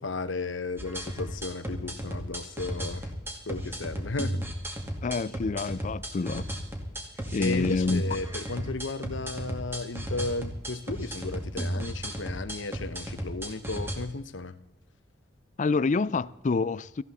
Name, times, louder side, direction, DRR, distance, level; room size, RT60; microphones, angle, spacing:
voice 1, 0.0-3.1 3.5-4.4 7.4-14.6, left 3 dB, 75° left, 1.0 m, -34 dB
sound 1, 0.8-14.0, equal, 10° right, 2.3 m, -34 dB
voice 2, 5.0-6.5 7.3-8.0 15.6-17.0, left 4 dB, 40° left, 0.4 m, -27 dB
18.0 x 15.0 x 4.2 m
head